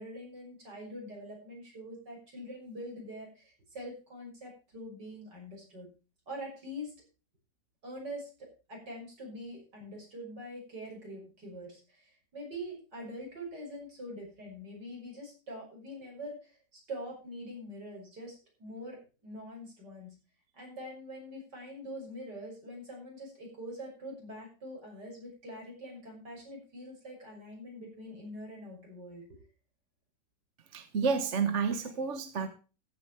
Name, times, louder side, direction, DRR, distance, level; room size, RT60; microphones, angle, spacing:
voice 1, 0.0-5.9 6.3-6.9 7.8-19.0 19.2-20.1 20.5-29.4, equal, 70° right, -1 dB, 6.8 m, -44 dB
voice 2, 30.7-32.5, right 5 dB, 45° right, 8 dB, 1.4 m, -30 dB
14.5 x 8.9 x 4.8 m, 0.34 s
omnidirectional pair, 1.9 m